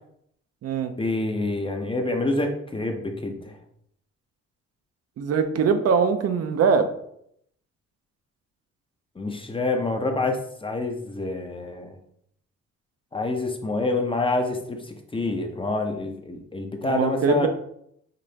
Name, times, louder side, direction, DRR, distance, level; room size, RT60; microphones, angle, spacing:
voice 1, 1.0-3.6 9.2-11.9 13.1-17.5, left 2 dB, 15° left, 4 dB, 0.7 m, -27 dB
voice 2, 5.2-6.9 16.8-17.5, right 5 dB, 55° right, 8 dB, 0.6 m, -22 dB
5.2 x 3.0 x 2.8 m, 0.71 s
cardioid pair, 90°, 30 cm